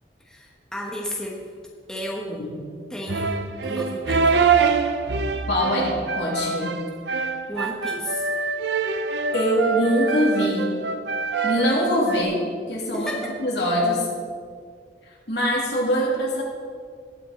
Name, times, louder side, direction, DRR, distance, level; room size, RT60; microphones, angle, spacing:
voice 1, 0.3-1.4 1.9-2.5 2.9-4.5 7.5-8.3 12.9-13.3, equal, 5° left, -2 dB, 1.2 m, -32 dB
sound 1, 3.1-12.2, right 5 dB, 75° right, 0.7 m, -25 dB
voice 2, 5.5-6.7 9.3-10.8 11.4-13.1 13.4-14.1 15.3-16.4, equal, 70° left, -3 dB, 2.9 m, -23 dB
18.5 x 6.7 x 4.2 m, 2.1 s
head